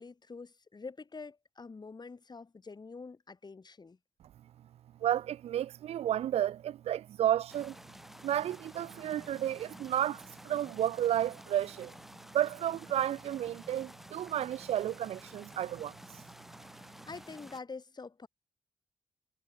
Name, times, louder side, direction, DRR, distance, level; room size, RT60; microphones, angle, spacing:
voice 1, 0.0-4.0 16.7-18.3, left 4 dB, 40° left, 2.8 m, -46 dB
voice 2, 5.0-7.7 8.2-11.9 12.3-16.0, right 11 dB, 70° right, 0.4 m, -32 dB
sound 1, 7.5-17.6, equal, ahead, 5.3 m, -52 dB
supercardioid pair, 45°, 11 cm